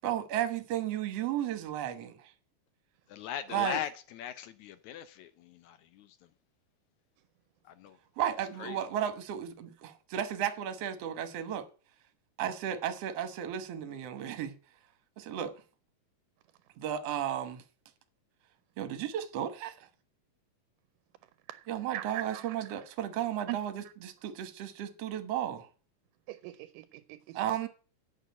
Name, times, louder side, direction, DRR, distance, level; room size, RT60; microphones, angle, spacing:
voice 1, 0.0-2.2 3.5-3.8 8.2-11.7 12.4-14.6 15.2-15.6 16.8-17.6 18.8-19.7 21.7-25.7 27.3-27.7, right 10 dB, 60° right, 1.9 m, -34 dB
voice 2, 3.1-6.2 7.7-8.0 8.6-8.8, left 10 dB, 75° left, 1.9 m, -39 dB
voice 3, 21.9-22.7 23.5-23.6 26.3-27.4, right 16 dB, 85° right, 2.2 m, -41 dB
8.7 x 6.6 x 8.2 m
omnidirectional pair, 3.8 m